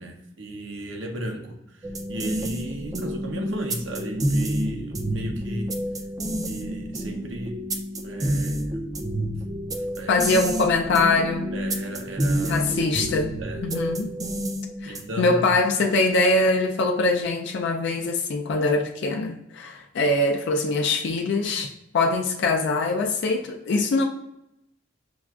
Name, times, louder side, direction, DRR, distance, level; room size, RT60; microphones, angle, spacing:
voice 1, 0.0-5.7 6.5-7.7 8.0-8.7 9.9-10.2 11.5-12.7 13.4-13.9 14.8-15.6, right 1 dB, 70° right, 3 dB, 0.7 m, -35 dB
sound 1, 1.8-15.3, right 1 dB, 20° right, 0.3 m, -29 dB
voice 2, 10.1-11.5 12.5-13.3 13.6-14.1 14.8-24.0, left 3 dB, 65° left, 3 dB, 0.4 m, -23 dB
6.0 x 2.3 x 2.3 m, 0.83 s
head